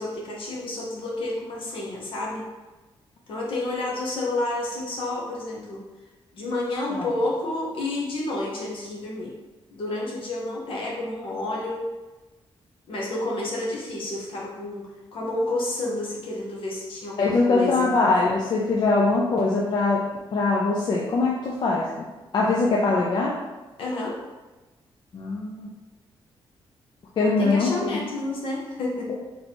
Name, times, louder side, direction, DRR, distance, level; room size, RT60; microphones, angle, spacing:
voice 1, 0.0-2.5 3.3-5.8 6.3-9.3 9.7-11.8 12.9-18.0 23.8-24.2 27.2-29.1, left 2 dB, 65° left, -3 dB, 1.0 m, -30 dB
voice 2, 17.2-20.0 20.3-21.9 22.3-23.4 25.1-25.7 27.2-27.9, left 3 dB, 50° left, -3 dB, 0.5 m, -22 dB
4.2 x 3.3 x 2.9 m, 1.1 s
wide cardioid pair, 145°, 10 cm